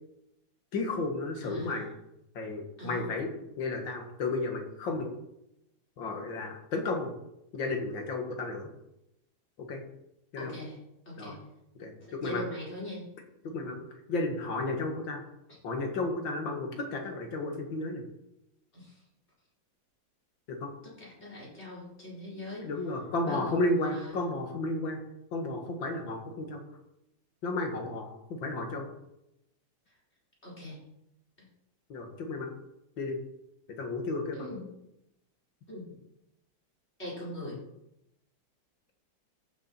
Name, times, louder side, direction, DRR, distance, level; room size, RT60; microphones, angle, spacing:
voice 1, 0.7-1.9 2.4-3.3 3.6-5.1 6.0-7.1 7.5-8.7 9.7-9.8 10.3-10.5 11.2-11.3 11.8-12.4 13.4-13.8 14.1-15.2 15.6-18.0 20.5-20.7 22.6-25.0 25.3-26.6 27.4-28.9 31.9-32.5 33.0-33.2 33.7-34.5, left 2 dB, 75° left, 3 dB, 2.5 m, -33 dB
voice 2, 1.4-1.8 2.8-3.1 10.4-10.8 11.0-11.4 12.0-13.1 13.5-13.6 15.5-15.6 18.7-19.0 20.8-22.7 23.2-24.1 30.4-30.8 34.3-34.6 35.7-36.0 37.0-37.6, left 1 dB, 30° left, -6 dB, 4.8 m, -41 dB
14.0 x 7.2 x 4.4 m, 0.85 s
omnidirectional pair, 2.1 m